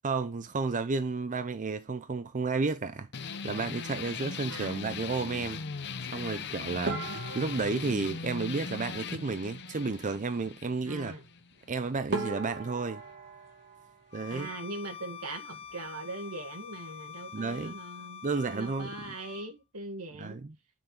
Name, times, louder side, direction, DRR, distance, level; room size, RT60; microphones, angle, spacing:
voice 1, 0.0-3.1 3.4-5.6 6.0-7.0 7.3-11.1 11.7-13.0 14.1-14.5 17.3-17.8 18.2-19.1 20.2-20.6, right 4 dB, 35° right, 0.5 m, -32 dB
sound 1, 3.1-12.2, left 5 dB, 50° left, 0.8 m, -39 dB
voice 2, 4.4-4.8 10.9-11.2 14.3-20.4, right 2 dB, 80° right, 1.9 m, -41 dB
sound 2, 6.9-9.3 11.6-11.7 12.1-14.9 15.1-15.9 16.2-16.4 16.7-16.8 17.5-17.8, right 3 dB, 50° right, 2.5 m, -39 dB
Bowed string instrument, 14.1-19.5, left 8 dB, 25° left, 0.4 m, -46 dB
9.8 x 6.4 x 3.8 m
head